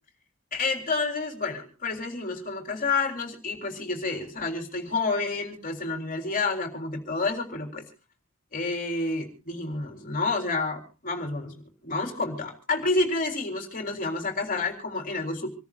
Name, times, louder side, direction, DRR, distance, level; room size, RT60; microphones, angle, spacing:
voice 1, 0.5-7.9 8.5-15.5, left 3 dB, 40° left, 2 dB, 3.8 m, -29 dB
27.0 x 14.0 x 2.4 m, 0.34 s
head